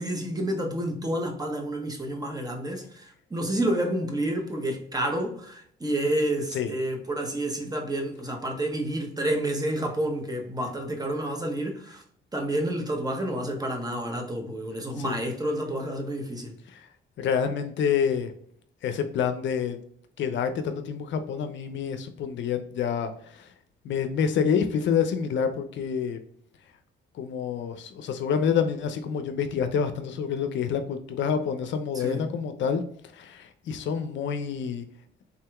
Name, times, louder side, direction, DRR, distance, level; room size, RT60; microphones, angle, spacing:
voice 1, 0.0-12.0 12.3-16.5 31.9-32.2, right 1 dB, 20° right, 0.8 m, -29 dB
voice 2, 17.2-18.3 18.8-19.8 20.2-23.5 23.8-26.2 27.1-32.8 33.1-34.8, left 7 dB, 70° left, 0.5 m, -27 dB
3.6 x 2.8 x 2.2 m
cardioid pair, 90°, 20 cm